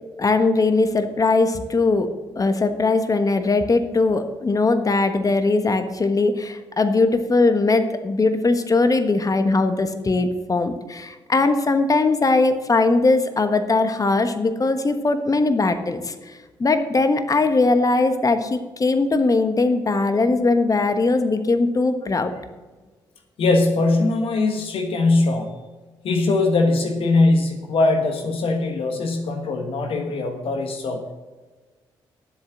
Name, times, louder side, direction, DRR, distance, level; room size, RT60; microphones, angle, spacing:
voice 1, 0.2-2.1 2.4-16.1 16.6-22.3, left 3 dB, 35° left, 9 dB, 1.4 m, -20 dB
voice 2, 23.4-25.6 26.0-31.1, left 2 dB, 65° left, 5 dB, 1.4 m, -21 dB
10.5 x 7.7 x 6.3 m, 1.3 s
hypercardioid pair, 50°, 10 cm